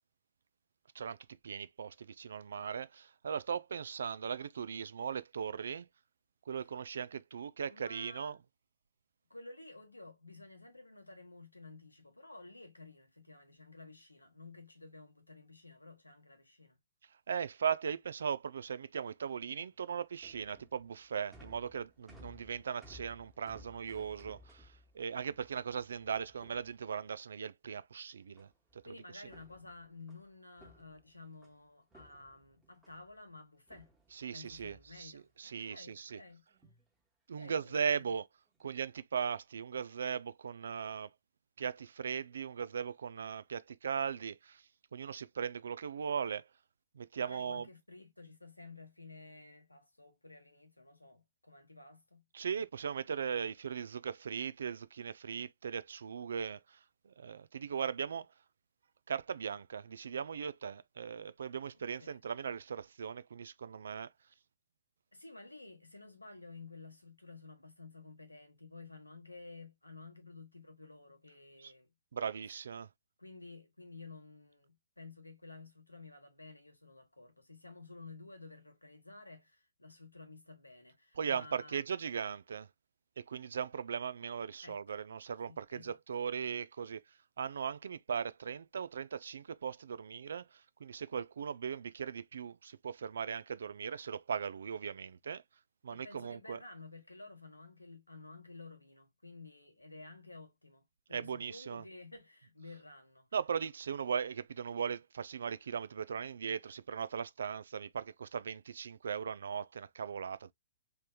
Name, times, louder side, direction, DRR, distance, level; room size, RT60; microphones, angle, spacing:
voice 1, 1.4-5.9 6.5-8.4 17.3-29.2 34.1-36.2 37.3-38.2 38.6-41.1 41.6-44.6 44.9-46.4 46.9-47.7 52.3-56.8 57.0-58.3 59.1-64.1 71.6-71.7 72.1-72.9 81.2-82.7 83.2-87.0 87.4-95.4 95.8-96.6 101.1-101.8 103.3-110.5, right 7 dB, 65° right, 0.3 m, -38 dB
voice 2, 7.6-8.4 9.3-16.8 28.8-33.9 34.3-36.4 37.4-38.0 47.2-52.2 62.0-62.2 65.1-71.9 73.2-81.8 84.6-85.0 85.5-86.0 95.9-103.3, left 3 dB, 90° left, 1.2 m, -53 dB
sound 1, 19.7-27.2 28.4-28.9 29.2-31.6 31.9-33.2 33.7-35.3 35.7-36.2 36.5-36.9 37.6-38.0 38.5-38.8, left 1 dB, 10° right, 1.2 m, -60 dB
3.3 x 3.1 x 2.2 m
figure-of-eight pair, 120°, 0 cm